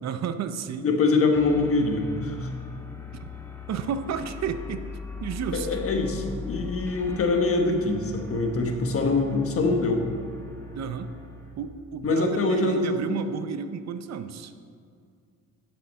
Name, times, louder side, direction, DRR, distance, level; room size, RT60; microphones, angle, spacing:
voice 1, 0.0-0.9 3.1-3.2 3.7-4.9 5.2-5.8 10.7-11.1 11.6-14.5, right 7 dB, 60° right, 11 dB, 0.6 m, -32 dB
voice 2, 0.8-2.5 5.5-10.1 12.0-13.2, left 3 dB, 50° left, 3 dB, 1.3 m, -24 dB
sound 1, 1.3-11.7, left 4 dB, 10° left, 1.3 m, -40 dB
11.0 x 6.8 x 4.2 m, 2.3 s
cardioid pair, 90°, 30 cm